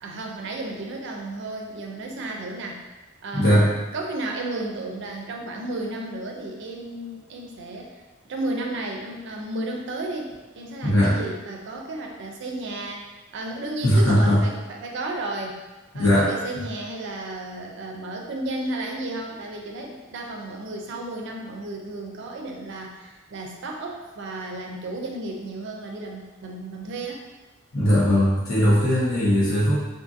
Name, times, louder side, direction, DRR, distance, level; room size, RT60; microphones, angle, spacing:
voice 1, 0.0-2.8 3.2-3.7 3.9-8.0 8.2-15.6 15.9-27.2, right 2 dB, 60° right, 1 dB, 0.4 m, -33 dB
voice 2, 3.3-3.7 10.8-11.2 13.8-14.4 15.9-16.3 27.7-29.8, equal, 75° left, -10 dB, 1.0 m, -19 dB
2.6 x 2.5 x 2.5 m, 1.2 s
head